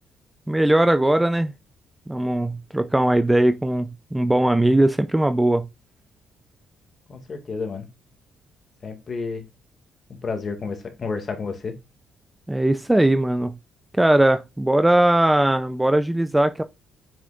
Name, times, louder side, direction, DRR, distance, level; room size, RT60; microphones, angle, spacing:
voice 1, 0.5-1.5 2.1-5.7 12.5-13.5 13.9-16.6, right 1 dB, 10° right, 0.5 m, -19 dB
voice 2, 7.1-7.9 8.8-9.5 10.1-11.7, left 4 dB, 45° left, 2.1 m, -31 dB
7.4 x 5.7 x 2.5 m
cardioid pair, 90°, 0 cm